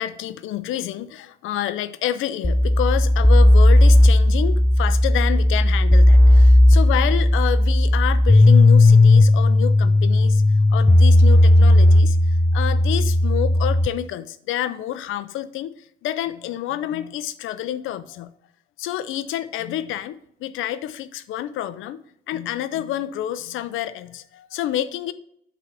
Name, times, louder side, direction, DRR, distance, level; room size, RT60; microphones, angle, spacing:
voice 1, 0.0-10.4 10.7-15.7 16.0-18.3 18.8-22.0 22.3-25.1, left 12 dB, 85° left, 13 dB, 0.5 m, -28 dB
sound 1, 2.4-13.9, left 1 dB, 5° left, 0.3 m, -14 dB
7.8 x 4.0 x 5.9 m, 0.70 s
cardioid pair, 90°, 20 cm